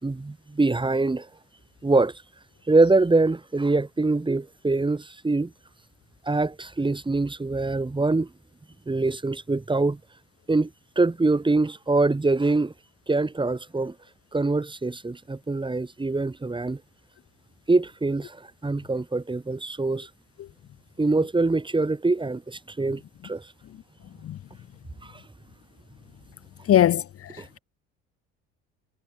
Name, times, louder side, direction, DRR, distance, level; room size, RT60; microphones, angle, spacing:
voice 1, 0.0-1.3 1.8-2.2 2.7-5.5 6.2-8.3 8.9-10.0 10.5-10.7 11.0-12.7 13.1-14.0 14.3-16.8 17.7-20.1 21.0-23.5 25.0-25.2 27.4-27.5, right 3 dB, 15° right, 3.6 m, -24 dB
voice 2, 26.7-27.6, left 11 dB, 45° left, 1.0 m, -21 dB
supercardioid pair, 85°, 32 cm